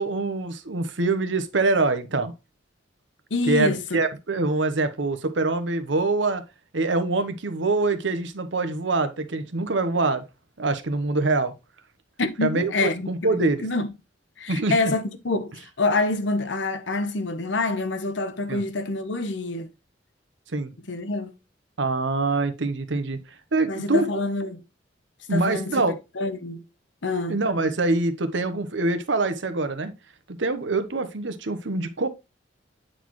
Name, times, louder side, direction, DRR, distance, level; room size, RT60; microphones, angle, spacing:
voice 1, 0.0-2.3 3.4-6.4 6.7-10.2 10.6-11.5 12.4-13.7 14.5-14.9 18.5-18.6 20.5-20.7 21.8-23.2 23.5-24.0 25.3-26.0 27.3-29.9 30.3-32.1, right 3 dB, 70° right, 0.9 m, -24 dB
voice 2, 3.3-4.0 12.2-13.9 14.4-19.7 20.9-21.3 23.7-24.6 25.3-25.7 26.2-26.6 27.0-27.4, left 3 dB, 70° left, 0.9 m, -26 dB
8.9 x 4.1 x 3.1 m
head